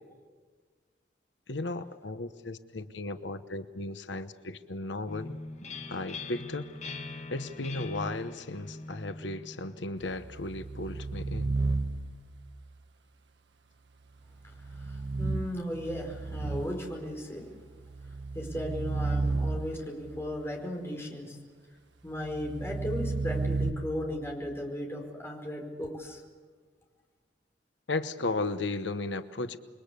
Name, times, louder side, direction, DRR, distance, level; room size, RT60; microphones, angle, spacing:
voice 1, 1.5-5.4 5.9-6.7 7.3-11.6 27.9-29.6, left 2 dB, 90° left, 10 dB, 1.0 m, -35 dB
sound 1, 5.1-10.7, left 3 dB, 40° left, 1.9 m, -42 dB
sound 2, 10.0-12.4 14.5-17.0 17.7-20.2 22.2-23.7, right 3 dB, 80° right, 1.5 m, -33 dB
voice 2, 14.7-17.5 18.3-21.4 22.0-26.2, left 1 dB, 15° left, 1 dB, 5.0 m, -36 dB
28.0 x 22.5 x 8.4 m, 1.5 s
head